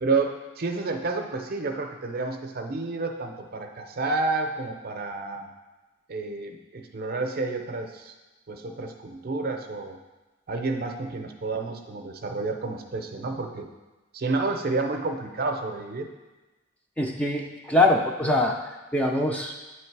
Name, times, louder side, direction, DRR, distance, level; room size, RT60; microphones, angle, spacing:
voice 1, 0.0-5.5 6.1-8.1 8.5-10.0 10.5-13.7 14.1-16.1, right 3 dB, 50° right, 4 dB, 0.5 m, -30 dB
voice 2, 17.0-18.6 18.9-19.6, left 2 dB, 5° left, 1 dB, 0.4 m, -23 dB
8.3 x 3.2 x 4.6 m, 1.1 s
head